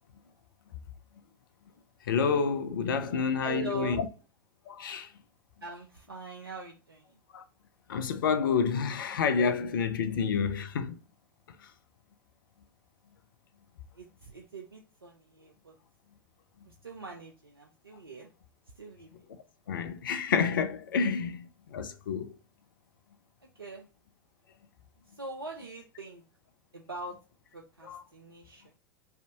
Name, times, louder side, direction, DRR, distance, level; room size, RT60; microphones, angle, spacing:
voice 1, 2.1-4.1 4.7-5.1 7.3-7.4 7.9-11.0 19.7-22.3 27.8-28.0, left 6 dB, 70° left, 0.4 m, -29 dB
voice 2, 3.0-4.0 5.6-7.0 14.0-15.7 16.7-18.3 18.8-19.1 23.6-23.9 25.2-26.2 26.7-27.2 27.5-28.6, right 3 dB, 85° right, 0.5 m, -42 dB
3.3 x 2.6 x 2.7 m
figure-of-eight pair, 85°, 12 cm